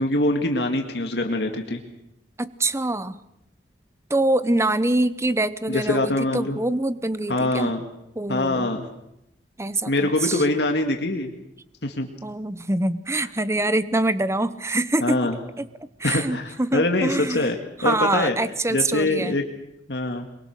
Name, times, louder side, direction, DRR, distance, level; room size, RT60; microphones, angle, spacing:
voice 1, 0.0-1.8 5.7-6.6 7.3-7.8 8.3-8.9 9.9-11.3 11.8-12.1 15.0-15.4 16.0-17.6 17.8-18.4 18.7-19.4 19.9-20.3, left 2 dB, 70° left, 4 dB, 2.1 m, -23 dB
voice 2, 2.4-3.2 4.1-7.7 8.2-8.7 9.6-10.4 12.2-15.2 15.6-15.7 16.0-17.5 17.8-19.4, right 2 dB, 15° right, 15 dB, 0.9 m, -24 dB
23.0 x 23.0 x 6.6 m, 0.83 s
head